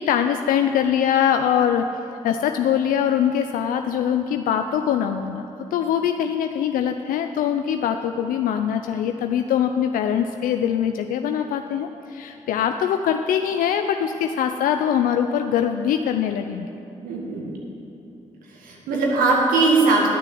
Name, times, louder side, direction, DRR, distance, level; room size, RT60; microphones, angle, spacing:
voice 1, 0.0-1.9 2.2-5.4 5.7-16.7, left 9 dB, 80° left, 6 dB, 0.4 m, -22 dB
voice 2, 17.0-17.6 18.5-20.1, right 3 dB, 90° right, -1 dB, 1.8 m, -20 dB
11.0 x 6.7 x 7.6 m, 2.9 s
supercardioid pair, 45°, 14 cm